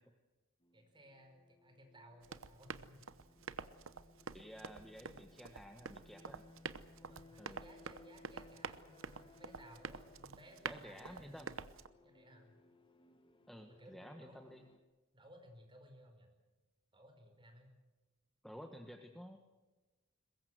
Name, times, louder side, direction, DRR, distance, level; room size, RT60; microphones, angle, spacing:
sound 1, 0.6-14.8, left 2 dB, 25° left, 1.8 m, -64 dB
voice 1, 0.7-3.0 3.3-3.6 5.7-5.9 7.0-11.6 12.0-12.5 13.7-14.4 15.1-16.3 16.9-17.7, equal, 25° right, 4 dB, 5.0 m, -60 dB
Run, 2.2-11.9, right 5 dB, 65° right, 0.9 m, -48 dB
voice 2, 4.3-6.5 7.4-7.6 10.6-11.6 13.5-14.6 18.4-19.4, equal, ahead, 4 dB, 1.4 m, -52 dB
23.0 x 20.5 x 7.8 m, 1.2 s
head